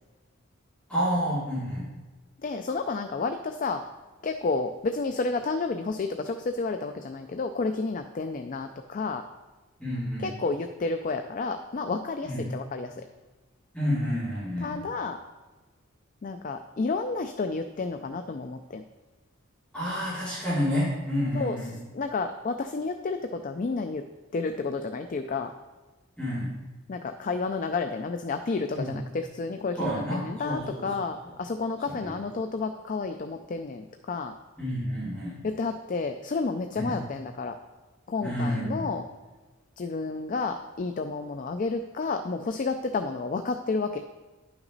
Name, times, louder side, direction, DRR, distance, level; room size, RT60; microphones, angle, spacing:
voice 1, 0.9-1.9 9.8-10.3 12.2-12.4 13.7-14.7 19.7-21.7 26.2-26.5 28.7-28.9 29.8-30.9 31.9-32.1 34.6-35.4 36.8-36.9 38.2-38.9, equal, 5° left, -12 dB, 3.2 m, -29 dB
voice 2, 2.4-3.8 4.2-9.2 10.2-13.0 14.6-15.2 16.2-18.8 21.3-21.6 21.9-24.0 24.3-25.5 26.9-34.3 35.4-37.6 38.1-39.1 39.8-44.0, left 4 dB, 40° left, 7 dB, 0.4 m, -31 dB
10.5 x 5.9 x 4.0 m, 1.2 s
head